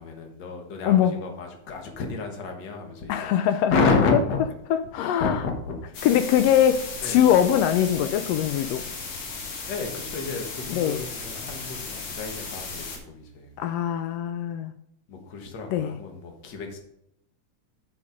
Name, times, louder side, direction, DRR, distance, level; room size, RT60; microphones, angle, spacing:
voice 1, 0.0-3.1 3.4-4.4 5.0-6.0 7.0-7.3 9.7-13.5 15.1-16.8, left 4 dB, 50° left, 3 dB, 1.5 m, -30 dB
voice 2, 3.1-3.7 4.7-5.4 6.0-8.8 10.7-11.0 13.6-14.7 15.7-16.0, left 10 dB, 90° left, 9 dB, 1.4 m, -22 dB
sound 1, 5.9-13.0, left 4 dB, 70° left, 2.8 m, -36 dB
6.5 x 5.7 x 5.0 m, 0.79 s
omnidirectional pair, 3.4 m